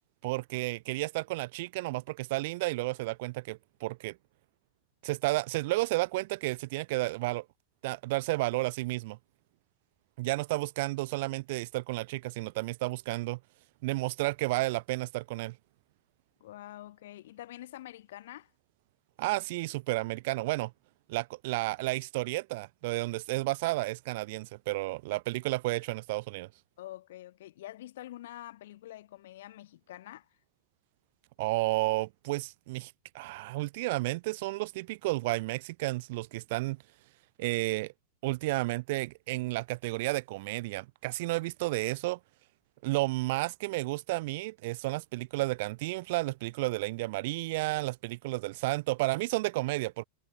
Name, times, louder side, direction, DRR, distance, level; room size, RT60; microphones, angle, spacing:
voice 1, 0.2-4.2 5.0-7.5 7.8-9.2 10.2-13.4 13.8-15.6 19.2-20.7 21.1-26.5 31.4-36.8 37.4-37.9 38.2-42.2 42.8-50.0, right 21 dB, 50° right, 0.4 m, -32 dB
voice 2, 16.4-18.5 26.8-30.3, left 14 dB, 55° left, 3.2 m, -46 dB
figure-of-eight pair, 90°, 0 cm